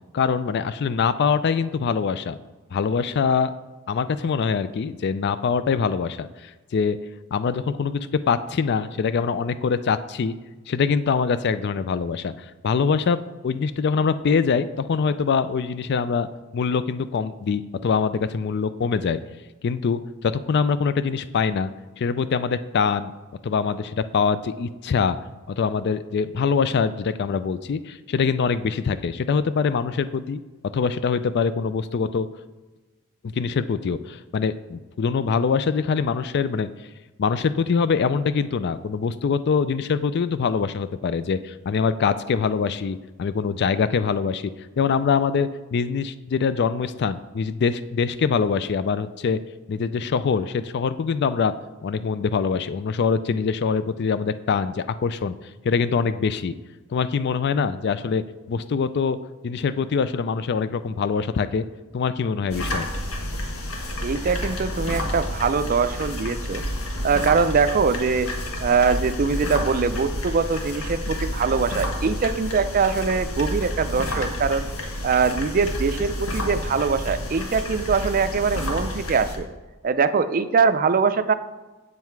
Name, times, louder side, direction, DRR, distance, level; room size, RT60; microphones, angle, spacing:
voice 1, 0.1-2.4 2.7-3.5 3.9-7.0 7.3-10.4 10.7-12.3 12.6-13.2 13.4-16.3 16.5-19.2 19.6-21.7 22.0-23.1 23.4-25.2 25.6-30.4 30.7-32.3 33.2-36.7 37.2-44.5 44.8-49.4 49.7-51.5 51.8-55.3 55.6-56.5 56.9-58.2 58.5-59.2 59.4-61.6 61.9-62.9, left 5 dB, 50° left, 14 dB, 0.4 m, -24 dB
sound 1, 62.5-79.4, left 1 dB, 80° left, 1.5 m, -30 dB
voice 2, 64.0-66.6 67.0-68.3 68.6-74.6 75.0-79.5 79.8-81.3, right 5 dB, 40° right, 12 dB, 0.4 m, -22 dB
8.2 x 7.6 x 4.6 m, 1.2 s
head